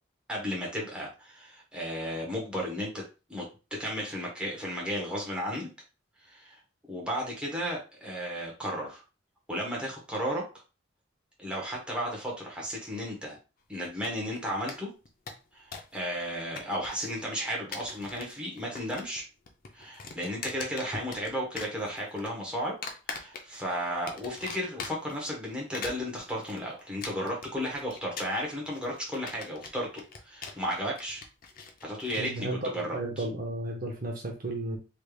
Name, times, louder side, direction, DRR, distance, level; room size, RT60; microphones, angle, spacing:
voice 1, 0.3-3.0 3.3-3.4 3.7-5.7 6.2-6.6 6.9-9.0 9.5-10.4 11.4-13.4 13.7-14.9 15.5-19.3 19.7-22.8 23.1-31.2 31.8-32.5 32.7-33.2, equal, 5° right, -3 dB, 1.1 m, -34 dB
sound 1, 13.8-14.4 14.7-14.8 15.1-16.0 16.2-17.1 17.5-18.3 18.6-19.2 19.5-21.3 21.6-22.3 22.8-23.7 24.1-25.2 25.6-32.3, left 4 dB, 50° left, 0.5 m, -41 dB
voice 2, 32.2-34.8, right 1 dB, 45° right, 2 dB, 0.6 m, -34 dB
3.2 x 3.2 x 2.3 m, 0.31 s
head